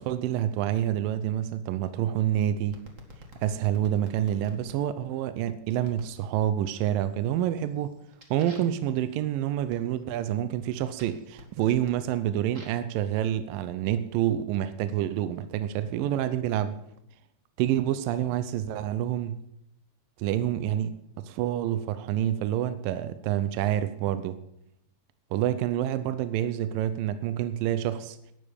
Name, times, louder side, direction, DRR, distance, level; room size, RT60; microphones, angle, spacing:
voice 1, 0.0-2.8 3.4-7.9 8.3-16.8 17.6-19.4 20.2-24.4 25.3-28.2, right 11 dB, 80° right, 12 dB, 2.1 m, -28 dB
sound 1, 2.7-4.8 5.8-6.2 6.6-7.1 7.5-12.9 13.7-14.9, equal, 40° right, 1.1 m, -51 dB
11.5 x 9.0 x 7.1 m, 0.75 s
omnidirectional pair, 4.6 m